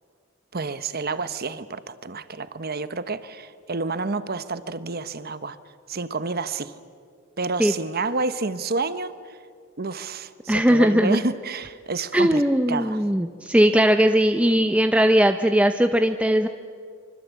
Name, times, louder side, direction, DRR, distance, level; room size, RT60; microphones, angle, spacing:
voice 1, 0.5-5.6 5.9-6.7 7.4-9.4 9.8-12.4 12.7-13.0, right 3 dB, 50° right, 13 dB, 1.1 m, -29 dB
voice 2, 10.5-11.2 12.1-16.5, equal, 5° right, 7 dB, 0.7 m, -19 dB
25.0 x 25.0 x 8.3 m, 2.2 s
head